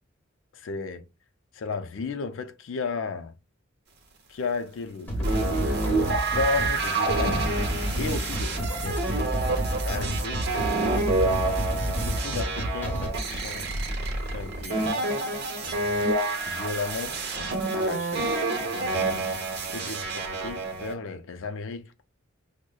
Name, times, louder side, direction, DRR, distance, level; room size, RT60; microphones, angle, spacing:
voice 1, 0.5-1.0 1.5-3.3 4.3-7.5 8.0-10.4 11.2-13.7 14.3-15.0 15.6-16.1 16.5-18.3 18.6-22.0, left 4 dB, 65° left, 0.4 m, -35 dB
sound 1, 5.1-13.1, equal, 10° left, 1.2 m, -30 dB
sound 2, 5.2-20.9, right 3 dB, 55° right, 0.9 m, -28 dB
6.1 x 2.1 x 2.2 m
head